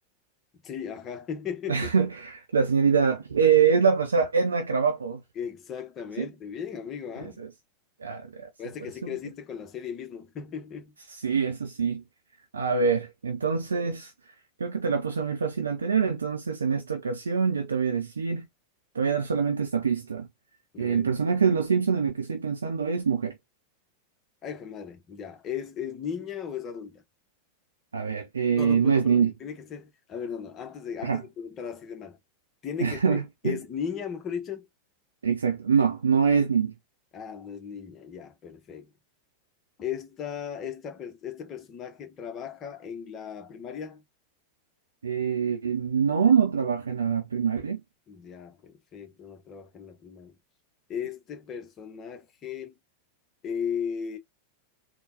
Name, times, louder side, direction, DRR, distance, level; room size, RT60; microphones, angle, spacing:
voice 1, 0.6-1.9 5.4-7.4 8.6-10.9 20.7-21.1 24.4-27.0 28.6-32.2 32.6-34.7 37.1-38.9 39.8-44.0 48.1-50.3 50.9-52.7 53.4-54.2, left 7 dB, 30° left, 1.0 m, -36 dB
voice 2, 1.7-5.2 6.2-6.3 7.2-7.5 8.0-8.5 9.0-9.1 11.1-12.0 12.5-14.1 14.6-18.5 18.9-20.3 20.8-23.4 27.9-29.3 31.0-31.2 32.8-33.6 35.2-36.7 45.0-47.8, right 6 dB, 70° right, 0.6 m, -25 dB
3.8 x 2.3 x 3.8 m
figure-of-eight pair, 90°, 0 cm